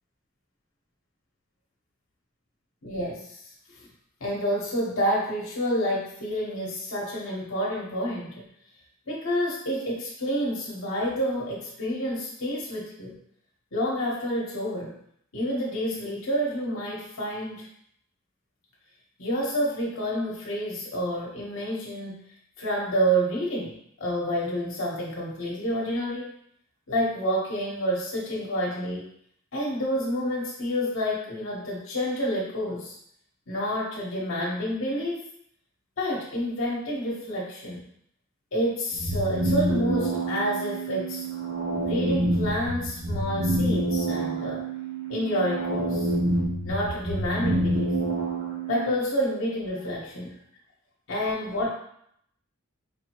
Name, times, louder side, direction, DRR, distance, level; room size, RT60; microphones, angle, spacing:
voice 1, 2.8-3.4 4.2-8.4 9.1-13.2 13.7-14.9 15.3-17.7 19.2-22.2 22.6-26.3 26.9-29.1 29.5-32.9 33.5-35.2 36.0-37.8 38.5-41.3 41.8-44.6 45.1-46.1 46.6-47.9 48.7-50.4 51.1-51.8, equal, 65° left, -4 dB, 1.1 m, -29 dB
sound 1, 38.9-48.9, right 1 dB, 55° right, 1.0 m, -27 dB
4.9 x 2.7 x 3.0 m, 0.70 s
head